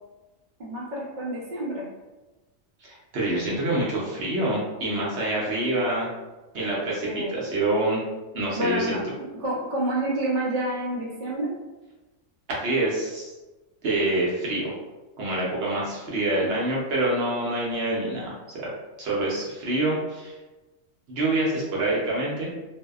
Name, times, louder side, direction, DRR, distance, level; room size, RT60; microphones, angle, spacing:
voice 1, 0.6-1.9 7.0-7.5 8.6-9.0 9.4-11.5, right 1 dB, 50° right, -5 dB, 0.6 m, -28 dB
voice 2, 3.1-6.1 6.5-8.0 8.3-9.0 12.5-13.3 13.8-14.7 15.2-18.7 19.0-20.3 21.1-22.5, right 2 dB, 65° right, -5 dB, 0.9 m, -26 dB
2.6 x 2.1 x 2.3 m, 1.1 s
omnidirectional pair, 1.3 m